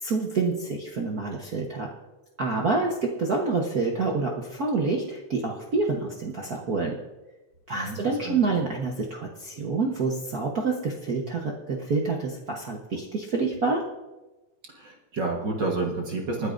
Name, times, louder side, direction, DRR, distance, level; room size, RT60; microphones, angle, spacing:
voice 1, 0.0-1.9 2.4-6.9 7.7-13.8, right 3 dB, 70° right, -1 dB, 0.9 m, -27 dB
voice 2, 7.7-8.4 14.8-16.5, right 3 dB, 45° right, 0 dB, 1.7 m, -30 dB
28.0 x 9.9 x 2.6 m, 1.1 s
omnidirectional pair, 3.4 m